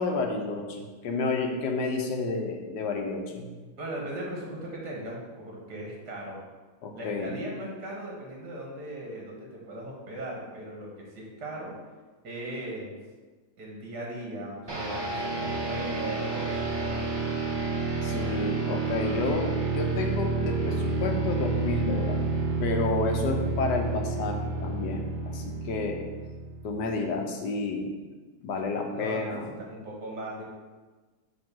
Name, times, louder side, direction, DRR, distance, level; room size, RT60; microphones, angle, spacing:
voice 1, 0.0-3.5 6.8-7.3 18.0-22.3 22.6-26.0 26.6-28.0 28.4-29.5, left 3 dB, 90° left, 3 dB, 1.5 m, -30 dB
voice 2, 3.8-6.4 6.9-11.7 12.2-12.9 13.6-17.1 28.9-29.3 29.6-30.4, right 1 dB, 75° right, -2 dB, 2.2 m, -38 dB
sound 1, 14.7-26.9, right 3 dB, 25° right, 0.5 m, -30 dB
6.9 x 3.1 x 6.0 m, 1.3 s
omnidirectional pair, 1.8 m